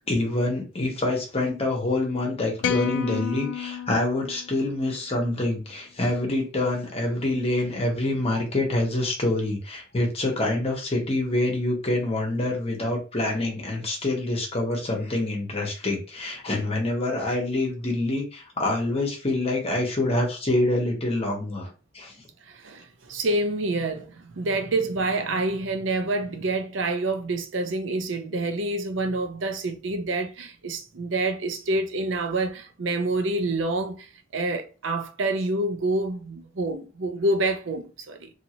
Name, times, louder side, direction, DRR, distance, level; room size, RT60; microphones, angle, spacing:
voice 1, 0.1-21.7 21.9-22.1, left 2 dB, 35° left, 1.0 m, -26 dB
sound 1, 2.6-5.0, left 8 dB, 65° left, 0.3 m, -30 dB
voice 2, 22.5-34.1 34.3-38.3, right 2 dB, 90° right, 0.6 m, -27 dB
2.8 x 2.7 x 2.9 m
head